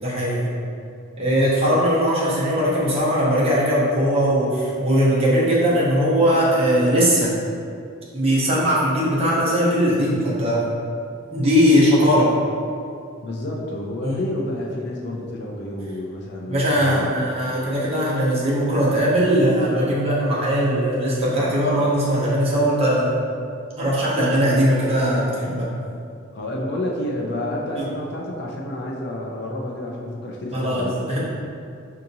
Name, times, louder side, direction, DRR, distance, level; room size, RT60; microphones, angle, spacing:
voice 1, 0.0-0.5 1.2-7.3 8.1-10.7 11.3-12.4 14.0-14.2 16.5-23.2 23.8-25.7 27.8-27.9 30.5-31.2, equal, 30° right, -7 dB, 0.9 m, -19 dB
voice 2, 13.2-17.1 26.3-31.2, left 1 dB, 55° left, -2 dB, 0.5 m, -29 dB
5.7 x 2.8 x 2.6 m, 2.4 s
head